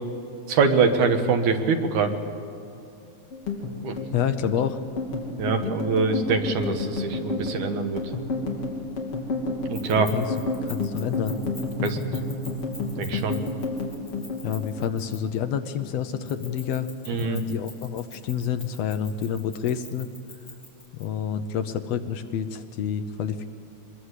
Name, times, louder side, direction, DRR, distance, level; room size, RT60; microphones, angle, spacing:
voice 1, 0.5-2.1 3.8-4.0 5.4-8.1 9.7-10.1 11.8-12.0 13.0-13.4 17.1-17.4, right 4 dB, 90° right, 7 dB, 2.8 m, -24 dB
sound 1, 3.3-15.9 16.1-17.2 17.5-17.8 18.1-18.8, left 3 dB, 55° left, 3.8 m, -31 dB
voice 2, 4.1-4.8 10.1-10.3 10.6-11.4 14.4-20.1 20.9-23.5, left 8 dB, 70° left, 10 dB, 1.7 m, -28 dB
Keys jangling, 9.7-15.4 16.3-21.0, left 1 dB, 15° left, 5.4 m, -45 dB
23.0 x 20.5 x 8.2 m, 2.7 s
omnidirectional pair, 3.3 m